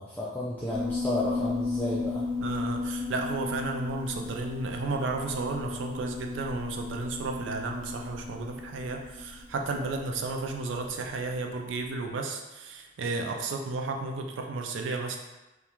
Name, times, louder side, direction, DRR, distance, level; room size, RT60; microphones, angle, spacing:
voice 1, 0.0-2.3, left 1 dB, 10° left, -9 dB, 0.3 m, -32 dB
Piano, 0.7-11.4, left 3 dB, 35° right, 1.2 m, -35 dB
voice 2, 2.4-15.2, right 3 dB, 90° right, 3 dB, 0.4 m, -33 dB
2.3 x 2.2 x 3.0 m, 1.1 s
head